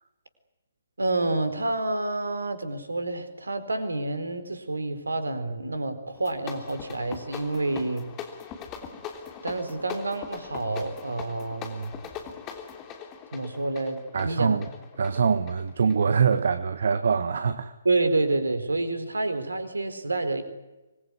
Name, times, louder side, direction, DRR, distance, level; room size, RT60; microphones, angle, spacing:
voice 1, 1.0-8.1 9.4-11.9 13.3-14.6 17.8-20.4, right 2 dB, 70° right, 10 dB, 4.2 m, -28 dB
sound 1, 6.1-16.5, left 7 dB, 20° left, 3.2 m, -41 dB
voice 2, 14.1-14.7 15.0-17.7, right 6 dB, 55° right, 11 dB, 1.2 m, -24 dB
25.0 x 21.0 x 9.6 m, 1.1 s
figure-of-eight pair, 135°, 0 cm